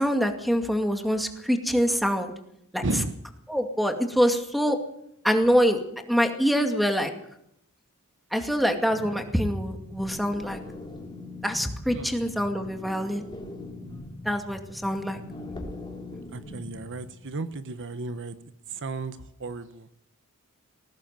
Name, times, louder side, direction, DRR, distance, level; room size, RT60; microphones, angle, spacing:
voice 1, 0.0-2.3 2.7-2.8 3.5-4.8 5.2-5.8 6.1-7.1 8.3-10.6 11.4-13.2 14.2-15.2, equal, ahead, 4 dB, 2.2 m, -25 dB
voice 2, 2.8-3.2 11.9-12.1 16.3-18.4 18.7-19.9, right 2 dB, 55° right, 11 dB, 1.1 m, -33 dB
sound 1, 8.9-17.1, left 2 dB, 20° left, 3.4 m, -41 dB
20.5 x 17.0 x 7.5 m, 0.76 s
head